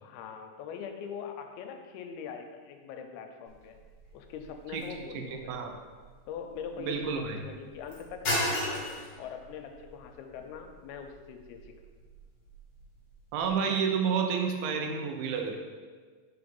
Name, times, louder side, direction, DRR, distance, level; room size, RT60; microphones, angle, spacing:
voice 1, 0.0-3.8 4.1-5.6 6.3-11.7, left 6 dB, 90° left, 5 dB, 2.5 m, -42 dB
sound 1, 3.5-13.5, equal, 45° left, 1.4 m, -39 dB
voice 2, 5.1-5.7 6.8-7.4 13.3-15.6, right 6 dB, 80° right, 4 dB, 2.3 m, -30 dB
5.4 x 3.9 x 5.2 m, 1.5 s
omnidirectional pair, 4.3 m